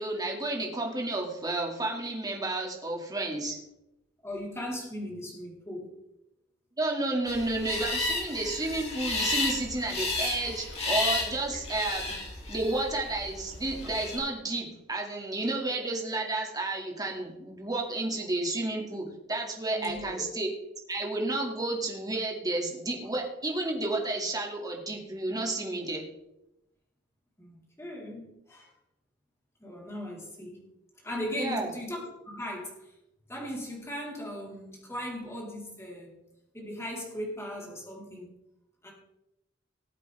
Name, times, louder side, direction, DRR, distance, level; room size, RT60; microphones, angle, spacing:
voice 1, 0.0-3.6 6.8-12.1 12.5-20.5 20.9-26.0 31.4-31.7, right 2 dB, 20° right, 0 dB, 2.3 m, -31 dB
voice 2, 4.2-5.9 19.7-20.2 27.4-28.7 29.6-30.6 31.0-32.8 33.3-36.1 36.5-38.3 38.8-38.9, equal, 15° left, -3 dB, 3.9 m, -38 dB
sound 1, 7.3-14.2, left 3 dB, 35° left, 3.4 m, -33 dB
19.5 x 8.1 x 3.5 m, 0.87 s
head